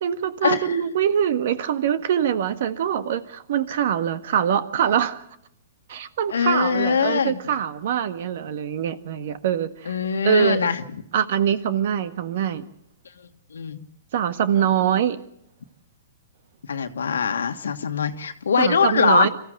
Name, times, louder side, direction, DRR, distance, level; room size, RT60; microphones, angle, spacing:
voice 1, 0.0-5.2 5.9-10.0 10.2-10.7 11.1-12.6 14.1-15.2 18.6-19.3, right 9 dB, 60° right, 11 dB, 1.6 m, -23 dB
voice 2, 6.3-7.4 9.9-10.8 13.5-13.8 16.7-19.3, left 6 dB, 85° left, 7 dB, 1.5 m, -22 dB
25.0 x 15.0 x 7.9 m, 0.74 s
hypercardioid pair, 135°, 0 cm